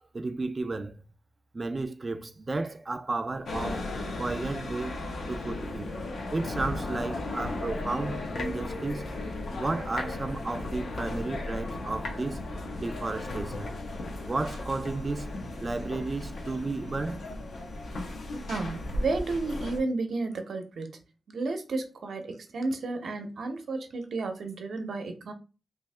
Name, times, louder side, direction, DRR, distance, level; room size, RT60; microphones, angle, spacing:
voice 1, 0.1-1.0 1.5-3.9 4.2-5.0 5.3-5.9 6.3-9.1 9.6-12.4 12.8-13.7 14.3-15.3 15.6-17.2, right 3 dB, 30° right, 0.3 m, -33 dB
sound 1, 3.5-19.8, left 2 dB, 80° left, 0.8 m, -35 dB
voice 2, 18.5-20.9 21.3-25.3, right 3 dB, 70° right, 0.7 m, -32 dB
3.1 x 2.7 x 3.3 m
wide cardioid pair, 100°, 0 cm